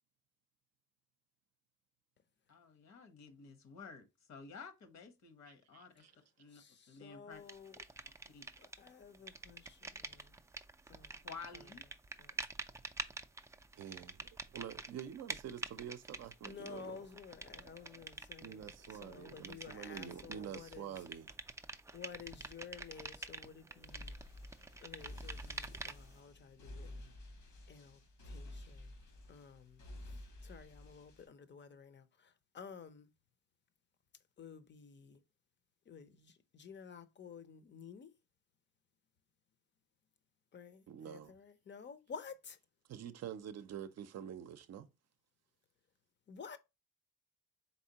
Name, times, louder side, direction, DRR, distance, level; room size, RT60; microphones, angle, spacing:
voice 1, 2.5-6.1 6.4-7.4 8.3-8.5 11.2-11.8, left 5 dB, 60° left, 1.1 m, -52 dB
voice 2, 5.7-6.1 13.7-17.1 18.4-21.3 40.9-41.3 42.9-44.9, right 9 dB, 60° right, 0.5 m, -47 dB
voice 3, 6.5-7.8 8.6-10.4 10.9-11.2 11.5-11.6 12.2-12.4 16.4-21.0 21.9-24.2 24.8-27.1 27.7-28.9 29.3-33.1 34.4-35.2 35.9-38.1 40.5-42.6 46.3-46.6, left 6 dB, 40° left, 0.6 m, -53 dB
sound 1, 7.5-8.9 9.1-26.2, right 3 dB, 10° right, 0.3 m, -47 dB
sound 2, 23.9-31.3, left 1 dB, 80° left, 1.7 m, -51 dB
4.2 x 3.5 x 2.8 m
cardioid pair, 90°, 30 cm